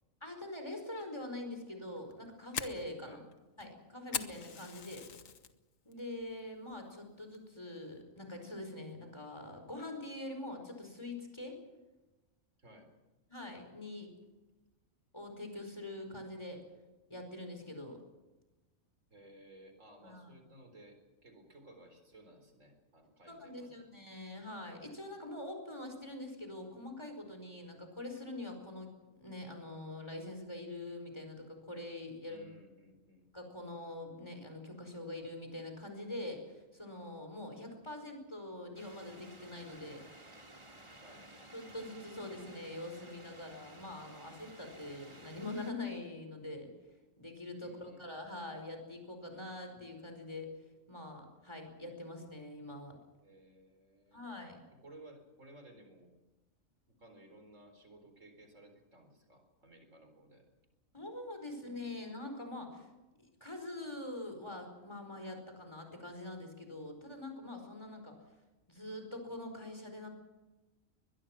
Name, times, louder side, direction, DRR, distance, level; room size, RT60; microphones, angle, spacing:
voice 1, 0.2-3.2 3.6-5.1 5.8-11.6 13.3-14.1 15.1-16.6 17.1-18.0 20.0-20.4 23.3-28.9 29.2-32.4 33.3-40.1 41.5-46.7 47.2-53.0 54.1-54.6 60.9-62.9 63.2-68.2 68.7-70.1, left 2 dB, 20° left, 4 dB, 4.9 m, -44 dB
Fire, 2.0-5.5 5.9-6.3 6.7-6.8 7.3-7.7, left 7 dB, 80° left, 1.6 m, -41 dB
voice 2, 12.6-12.9 19.1-23.8 32.2-33.3 41.0-41.3 47.6-48.0 53.2-54.3 54.7-56.1 57.0-60.4 61.9-62.0, right 1 dB, 70° right, 5 dB, 4.6 m, -57 dB
sound 1, 38.7-45.7, right 1 dB, 20° right, 2.3 m, -55 dB
22.5 x 21.5 x 6.1 m, 1.1 s
omnidirectional pair, 1.4 m